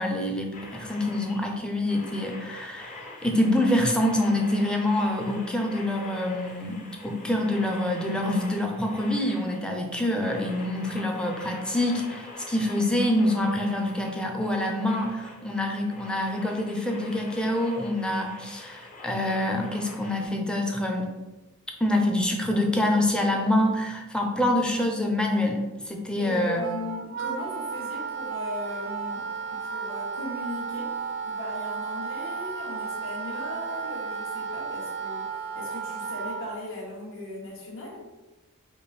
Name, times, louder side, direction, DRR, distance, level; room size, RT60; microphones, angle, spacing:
voice 1, 0.0-21.2 21.8-25.6 25.9-26.6, left 1 dB, 5° left, 1 dB, 0.5 m, -26 dB
sound 1, 0.5-20.3, left 2 dB, 35° left, 0.8 m, -45 dB
voice 2, 26.2-38.0, left 2 dB, 65° left, -4 dB, 1.3 m, -38 dB
Wind instrument woodwind instrument, 26.6-36.6, right 6 dB, 60° right, 0.5 m, -33 dB
5.2 x 2.1 x 4.1 m, 1.1 s
head